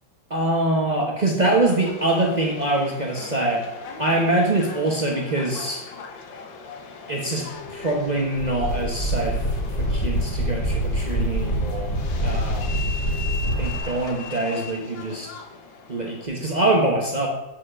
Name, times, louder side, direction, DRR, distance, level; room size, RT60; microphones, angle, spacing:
voice 1, 0.3-3.7 4.0-5.8 7.1-11.9 12.2-12.7 13.6-15.3 15.9-17.3, right 2 dB, 50° right, -1 dB, 0.5 m, -24 dB
Subway metro underground, 1.7-16.3, left 4 dB, 70° left, 1.5 m, -39 dB
sound 1, 7.5-13.8, equal, 20° left, 1.1 m, -26 dB
7.3 x 4.9 x 4.9 m, 1.0 s
omnidirectional pair, 2.1 m